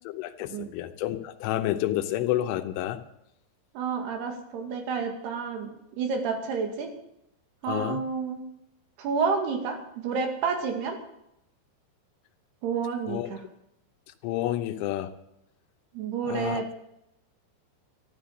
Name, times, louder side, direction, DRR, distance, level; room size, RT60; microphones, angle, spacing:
voice 1, 0.1-3.0 7.7-8.0 13.1-13.3 14.2-15.1 16.3-16.6, left 13 dB, 85° left, 6 dB, 3.4 m, -29 dB
voice 2, 3.7-5.7 6.0-6.9 7.6-8.4 9.0-11.0 12.6-13.4 15.9-16.7, right 5 dB, 60° right, 4 dB, 4.0 m, -30 dB
13.0 x 12.5 x 6.5 m, 0.81 s
omnidirectional pair, 5.5 m